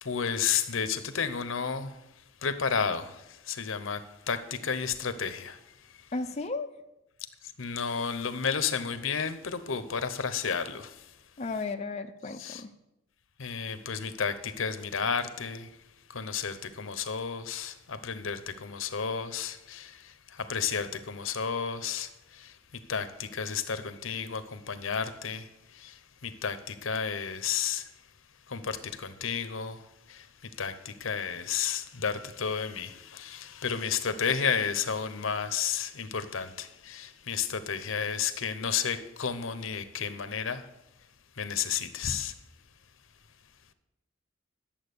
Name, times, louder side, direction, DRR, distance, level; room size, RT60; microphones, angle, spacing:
voice 1, 0.0-2.0 2.4-5.6 7.6-11.1 12.4-12.6 13.4-15.7 16.1-22.6 22.9-27.9 28.5-29.8 30.1-40.7 41.4-42.3, left 6 dB, 80° left, 0.9 m, -32 dB
voice 2, 6.1-6.7 11.4-12.7, left 3 dB, 35° left, 0.5 m, -34 dB
11.0 x 7.3 x 6.7 m
head